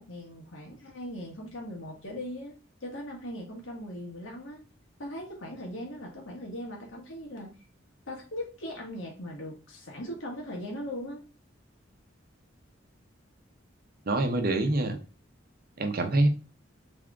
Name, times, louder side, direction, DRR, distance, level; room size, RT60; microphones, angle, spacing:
voice 1, 0.0-2.5 2.8-4.6 5.0-7.6 8.1-11.2, left 1 dB, 90° left, 0 dB, 1.6 m, -39 dB
voice 2, 14.1-15.0 15.8-16.3, right 2 dB, 50° right, 6 dB, 0.7 m, -25 dB
3.7 x 3.5 x 3.5 m, 0.35 s
head